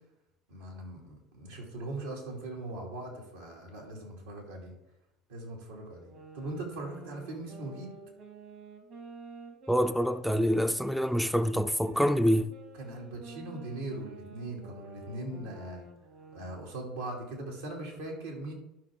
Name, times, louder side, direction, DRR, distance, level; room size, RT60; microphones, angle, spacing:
voice 1, 0.5-4.7 5.3-7.9 12.7-15.8 16.3-18.5, right 2 dB, 90° right, 2.6 m, -40 dB
sound 1, 5.9-11.3 11.8-16.7, right 3 dB, 60° right, 1.8 m, -50 dB
voice 2, 9.7-12.5, equal, ahead, 0.5 m, -26 dB
12.0 x 5.6 x 3.7 m
hypercardioid pair, 75°, 0 cm